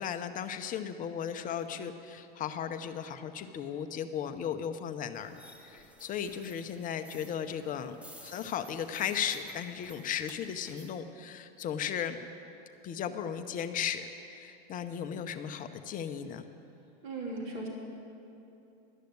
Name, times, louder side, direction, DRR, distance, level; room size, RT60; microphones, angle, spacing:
voice 1, 0.0-12.2 12.8-16.5, left 8 dB, 25° left, 9 dB, 0.7 m, -36 dB
sound 1, 5.1-10.9, equal, 5° right, 1.0 m, -54 dB
voice 2, 17.0-17.7, right 2 dB, 40° right, -3 dB, 3.3 m, -37 dB
12.0 x 6.6 x 9.3 m, 2.9 s
hypercardioid pair, 115°, 31 cm